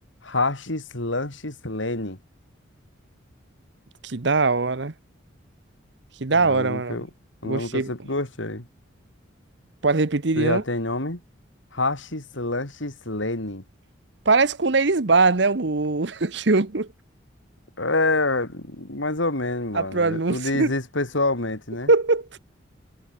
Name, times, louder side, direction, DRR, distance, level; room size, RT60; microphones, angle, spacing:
voice 1, 0.2-2.2 6.3-7.1 7.4-8.7 10.4-11.2 11.7-13.6 17.8-21.9, left 2 dB, 70° left, 3.6 m, -27 dB
voice 2, 4.0-4.9 6.2-7.0 7.4-7.9 9.8-10.6 14.2-16.9 19.7-20.7 21.9-22.3, right 3 dB, 60° right, 1.0 m, -21 dB
head